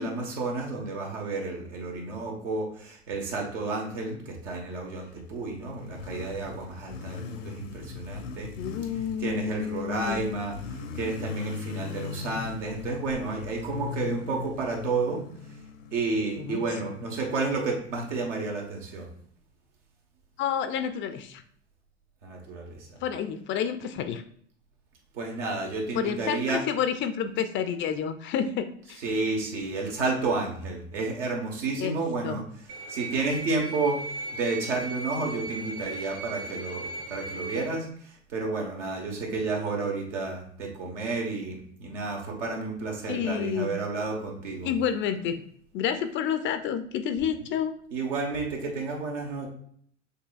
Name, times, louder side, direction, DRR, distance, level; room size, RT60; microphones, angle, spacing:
voice 1, 0.0-8.5 9.2-15.2 15.9-19.1 22.2-23.0 25.1-26.6 29.0-32.4 32.9-34.0 34.3-44.7 47.9-49.5, right 3 dB, 80° right, 0 dB, 1.4 m, -31 dB
Motorcycle, 5.1-17.8, left 7 dB, 80° left, 0.7 m, -40 dB
voice 2, 8.6-10.2 16.4-17.0 20.4-21.4 23.0-24.2 25.9-29.0 31.8-32.0 32.2-32.4 43.1-43.7 44.6-45.4 45.7-47.7, left 8 dB, 35° left, 10 dB, 0.4 m, -29 dB
sound 1, 32.7-37.7, right 2 dB, 35° right, 0.6 m, -37 dB
6.6 x 2.7 x 2.4 m, 0.62 s
hypercardioid pair, 90°, 36 cm